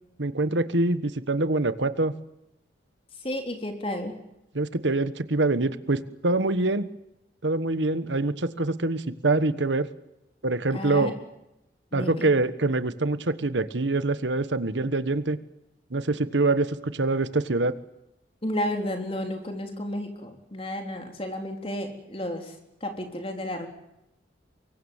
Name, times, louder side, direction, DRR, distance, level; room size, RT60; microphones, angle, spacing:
voice 1, 0.2-2.1 4.5-6.9 7.4-9.9 10.4-11.1 11.9-15.4 15.9-17.7, right 2 dB, 85° right, 13 dB, 1.4 m, -25 dB
voice 2, 3.2-4.2 10.7-11.1 11.9-12.3 18.4-22.5 22.8-23.7, left 1 dB, 30° left, 4 dB, 3.8 m, -32 dB
24.5 x 23.0 x 7.3 m, 0.87 s
head